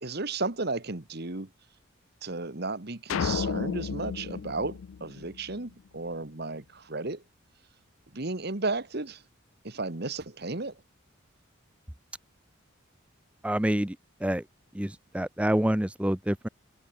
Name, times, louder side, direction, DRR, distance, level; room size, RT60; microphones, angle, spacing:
voice 1, 0.0-1.5 2.2-7.2 8.1-9.2 9.6-10.7, right 3 dB, 50° right, 1.6 m, -34 dB
sound 1, 3.1-5.6, left 6 dB, 75° left, 0.4 m, -32 dB
voice 2, 13.4-14.0 14.2-14.4 14.7-16.5, right 1 dB, 5° right, 0.6 m, -27 dB
head